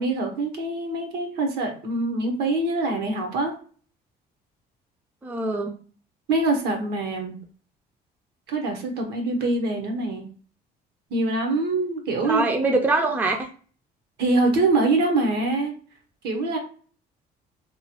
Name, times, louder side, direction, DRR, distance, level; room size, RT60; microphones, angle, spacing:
voice 1, 0.0-3.5 6.3-7.4 8.5-10.3 11.1-12.5 14.2-15.7 16.2-16.6, right 2 dB, 75° right, 4 dB, 0.9 m, -24 dB
voice 2, 5.2-5.7 12.2-13.5, right 2 dB, 10° right, 3 dB, 0.4 m, -23 dB
3.0 x 2.1 x 2.8 m, 0.42 s
cardioid pair, 110°, 17 cm